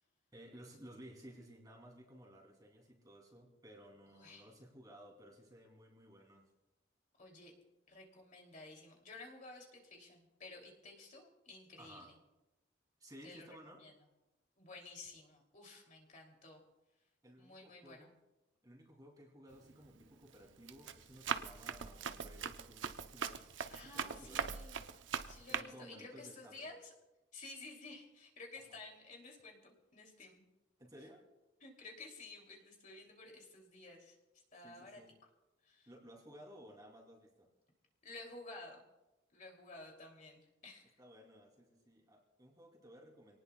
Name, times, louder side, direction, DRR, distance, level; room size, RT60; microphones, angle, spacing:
voice 1, 0.3-6.4 11.8-12.1 13.0-13.8 17.2-18.2 18.6-24.6 25.5-26.7 28.7-28.8 30.8-31.2 34.6-35.2 35.9-37.5 41.0-43.4, equal, 20° right, 0 dB, 2.9 m, -57 dB
voice 2, 4.1-4.5 7.2-7.5 7.9-12.1 13.2-13.9 14.6-16.6 17.4-18.1 23.7-24.8 25.3-26.9 27.3-30.4 31.6-34.2 34.5-35.0 35.6-35.9 38.0-38.8 39.3-41.0, left 3 dB, 40° left, 1 dB, 2.9 m, -53 dB
Run, 19.5-19.9 20.3-25.6, right 6 dB, 70° right, 0.7 m, -41 dB
26.5 x 18.5 x 2.3 m, 1.0 s
head